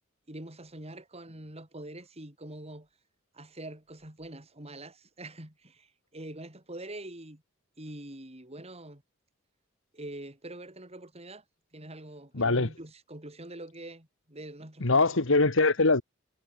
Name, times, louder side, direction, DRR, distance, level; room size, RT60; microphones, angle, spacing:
voice 1, 0.3-2.9 3.3-7.4 7.8-9.0 9.9-11.4 11.7-15.1, right 1 dB, 30° right, 5.0 m, -44 dB
voice 2, 12.3-12.7 14.8-16.0, left 3 dB, 65° left, 1.7 m, -23 dB
head